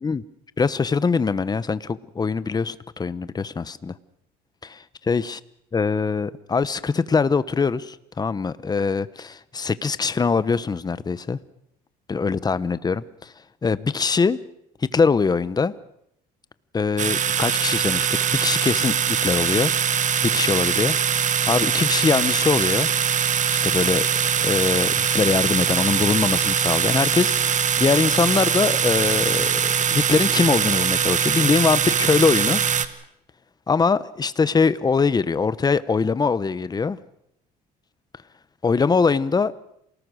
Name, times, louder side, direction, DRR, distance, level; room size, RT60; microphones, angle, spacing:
voice 1, 0.6-4.0 4.6-4.8 5.1-5.4 5.7-11.4 12.1-13.3 13.6-14.4 14.8-15.7 16.7-19.7 20.2-21.0 21.4-22.9 23.5-32.6 33.7-37.0 38.6-39.5, left 5 dB, 25° left, 16 dB, 1.0 m, -22 dB
sound 1, 17.0-32.9, right 8 dB, 45° right, 1.5 m, -22 dB
28.0 x 19.0 x 6.4 m, 0.75 s
cardioid pair, 110°, 17 cm